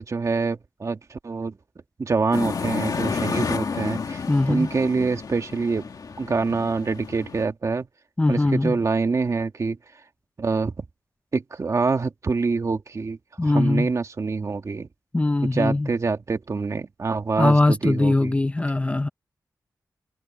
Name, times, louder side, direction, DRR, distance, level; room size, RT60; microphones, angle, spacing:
voice 1, 0.0-1.6 2.0-5.9 6.2-7.9 8.3-9.8 10.4-10.8 11.3-14.9 15.5-18.3, right 4 dB, 50° right, 1.9 m, -25 dB
sound 1, 2.3-7.4, left 5 dB, 70° left, 2.0 m, -30 dB
voice 2, 4.3-4.7 8.2-8.8 13.4-13.9 15.1-15.9 17.4-19.1, left 2 dB, 20° left, 0.5 m, -21 dB
wide cardioid pair, 115°, 7 cm